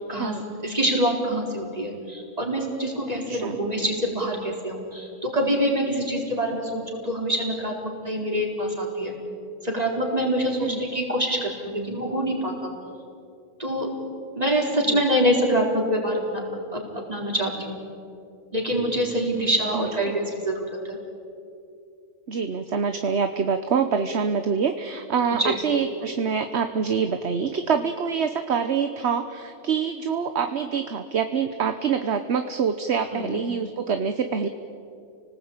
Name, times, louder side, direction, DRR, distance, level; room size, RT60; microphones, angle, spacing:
voice 1, 0.1-0.4 3.3-3.6 10.6-10.8 14.9-15.0 19.7-20.2 22.3-34.5, right 6 dB, 55° right, 8 dB, 1.2 m, -25 dB
voice 2, 0.6-7.7 8.0-9.1 9.6-12.7 13.6-13.9 14.4-16.4 16.7-17.8 18.5-21.0 25.3-25.6 33.1-33.3, equal, 25° right, 0 dB, 4.4 m, -25 dB
29.5 x 19.0 x 8.8 m, 2.6 s
omnidirectional pair, 1.4 m